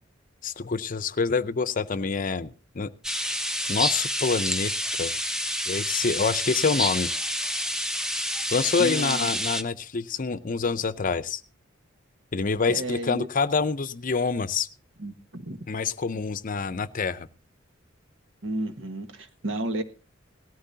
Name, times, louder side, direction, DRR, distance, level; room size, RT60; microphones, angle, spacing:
voice 1, 0.4-2.9 3.7-4.7 5.0-5.2 5.7-7.1 8.5-11.4 12.3-14.7 15.7-17.3, left 4 dB, 45° left, 14 dB, 0.6 m, -26 dB
sound 1, 3.0-9.6, equal, 5° right, 0.7 m, -28 dB
voice 2, 8.8-9.3 12.7-13.3 15.0-15.6 18.4-19.8, right 1 dB, 75° right, 7 dB, 1.5 m, -32 dB
18.0 x 13.5 x 2.8 m, 0.32 s
head